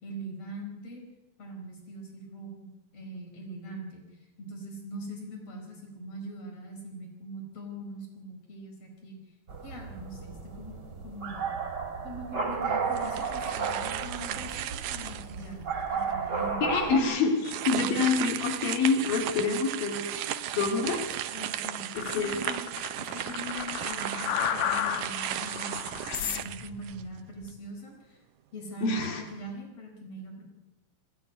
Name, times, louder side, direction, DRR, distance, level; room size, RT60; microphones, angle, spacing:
voice 1, 0.0-1.0 1.4-4.0 4.4-9.2 9.6-10.8 11.0-11.5 12.0-16.7 17.7-18.0 20.1-20.5 21.3-22.7 23.0-25.9 26.2-28.2 28.5-30.5, right 1 dB, 45° left, 2 dB, 5.4 m, -42 dB
sound 1, 9.5-17.0, right 5 dB, 35° right, 2.7 m, -33 dB
sound 2, 12.9-15.5 16.0-16.1 17.4-27.2, right 12 dB, 75° right, 2.4 m, -35 dB
voice 2, 16.6-20.0 20.6-21.3 22.1-22.4 28.8-29.2, left 4 dB, 85° left, 3 dB, 4.1 m, -27 dB
sound 3, 22.0-27.6, left 10 dB, 65° left, 2.0 m, -33 dB
21.5 x 15.5 x 9.4 m, 1.2 s
omnidirectional pair, 3.9 m